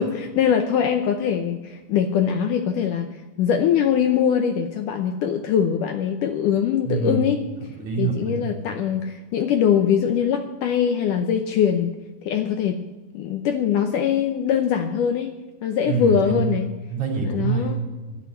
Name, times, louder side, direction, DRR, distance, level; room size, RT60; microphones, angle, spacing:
voice 1, 0.0-3.1 3.4-7.4 8.0-12.0 12.2-12.8 13.1-15.4 15.6-16.7 17.3-17.8, left 8 dB, 75° left, 6 dB, 2.1 m, -22 dB
voice 2, 6.8-7.3 7.6-8.8 15.9-16.6 16.9-18.2, right 5 dB, 50° right, 0 dB, 4.0 m, -26 dB
12.5 x 11.0 x 8.1 m, 1.2 s
omnidirectional pair, 4.4 m